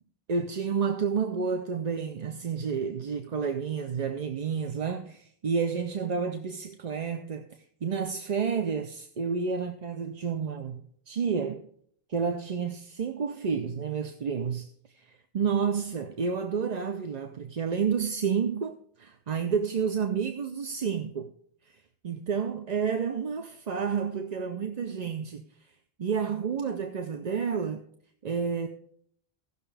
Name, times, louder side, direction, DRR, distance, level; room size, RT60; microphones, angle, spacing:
voice 1, 0.3-7.5 7.8-11.7 12.1-14.7 14.9-15.0 15.3-21.3 22.0-25.4 26.0-27.8 28.2-28.7, right 6 dB, 45° right, 0.7 m, -30 dB
17.0 x 6.5 x 3.4 m
omnidirectional pair, 1.0 m